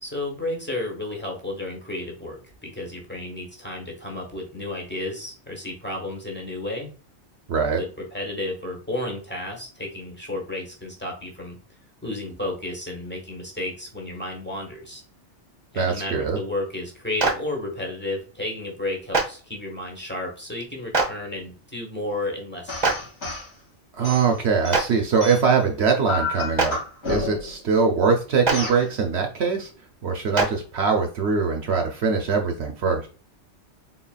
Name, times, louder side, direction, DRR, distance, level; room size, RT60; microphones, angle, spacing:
voice 1, 0.0-6.9 7.7-11.6 12.0-15.0 15.7-23.1, left 1 dB, 10° left, -1 dB, 1.2 m, -32 dB
voice 2, 7.5-7.8 15.8-16.4 23.9-26.8 27.0-29.7 30.0-33.1, right 5 dB, 70° right, 2 dB, 0.9 m, -22 dB
Clapping, 17.2-17.3 19.1-19.2 20.9-21.1 22.8-22.9 24.7-24.8 26.5-26.7 28.4-28.5 30.3-30.5, right 4 dB, 40° right, 0.9 m, -20 dB
sound 1, 22.7-23.5 24.0-25.6 26.1-27.6 28.5-28.8, left 3 dB, 80° left, 1.9 m, -30 dB
4.0 x 3.9 x 2.2 m, 0.38 s
omnidirectional pair, 1.2 m